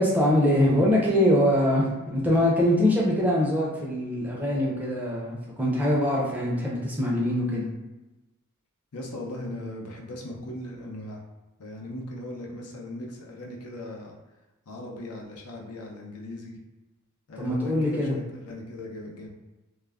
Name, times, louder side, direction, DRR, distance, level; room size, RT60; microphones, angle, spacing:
voice 1, 0.0-7.7 17.4-18.1, left 1 dB, 5° right, -5 dB, 0.5 m, -23 dB
voice 2, 8.9-11.2 11.6-14.1 14.7-16.6 17.3-19.3, left 1 dB, 80° left, -1 dB, 0.6 m, -38 dB
2.3 x 2.0 x 3.4 m, 1.0 s
head